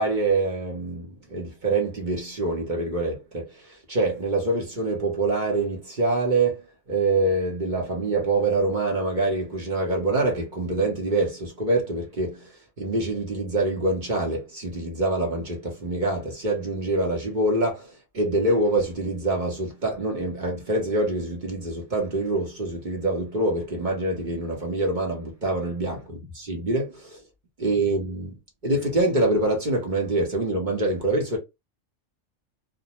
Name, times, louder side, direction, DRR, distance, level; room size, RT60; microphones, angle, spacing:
voice 1, 0.0-6.6 6.9-27.2 27.6-28.3 28.6-31.4, right 2 dB, 40° right, 0.9 m, -25 dB
2.6 x 2.2 x 2.8 m
omnidirectional pair, 1.4 m